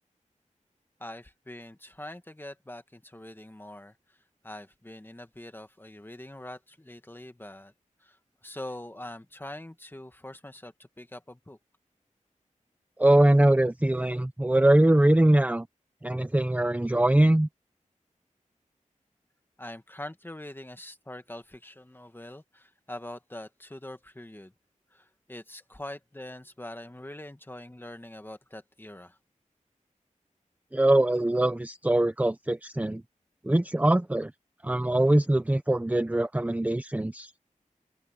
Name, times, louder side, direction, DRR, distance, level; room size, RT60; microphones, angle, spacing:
voice 1, 1.0-4.0 4.4-7.7 8.0-8.2 8.4-11.6 19.6-24.5 24.9-29.2, left 1 dB, 15° left, 1.9 m, -43 dB
voice 2, 13.0-15.7 16.0-17.5 30.7-33.0 33.4-34.3 34.6-37.3, right 1 dB, 10° right, 0.7 m, -22 dB
open air
wide cardioid pair, 85°, 13 cm